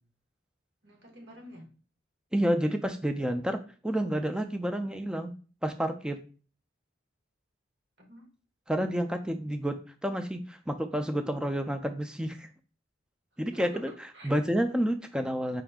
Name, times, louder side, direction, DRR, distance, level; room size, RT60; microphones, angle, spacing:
voice 1, 0.8-1.7 8.0-8.3 13.3-14.3, equal, 65° right, 2 dB, 1.2 m, -48 dB
voice 2, 2.3-5.3 5.6-6.2 8.7-12.5 13.4-13.9 14.2-15.6, equal, 5° right, 7 dB, 0.3 m, -29 dB
4.8 x 2.6 x 3.5 m, 0.37 s
head